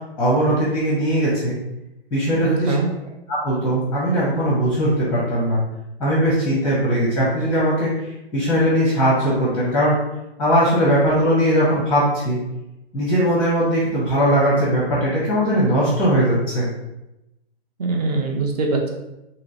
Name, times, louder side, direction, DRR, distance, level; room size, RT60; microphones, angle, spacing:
voice 1, 0.2-1.6 2.1-2.7 3.3-5.6 6.0-9.9 10.4-12.4 12.9-16.7, equal, 5° left, -8 dB, 0.6 m, -19 dB
voice 2, 2.4-2.9 17.8-18.9, right 3 dB, 40° right, 2 dB, 0.5 m, -22 dB
2.9 x 2.9 x 2.6 m, 0.93 s
hypercardioid pair, 150°, 32 cm